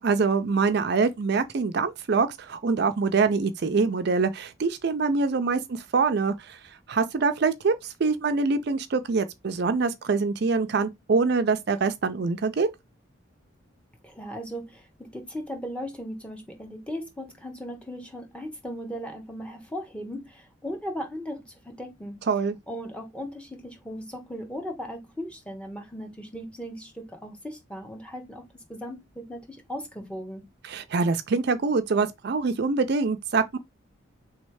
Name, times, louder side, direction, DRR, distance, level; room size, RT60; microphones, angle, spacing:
voice 1, 0.0-6.6 6.9-12.7 22.3-22.6 30.6-33.6, right 4 dB, 55° right, 0.4 m, -24 dB
voice 2, 14.0-22.2 22.7-30.4, equal, 5° left, 1.0 m, -37 dB
3.4 x 3.2 x 4.6 m
head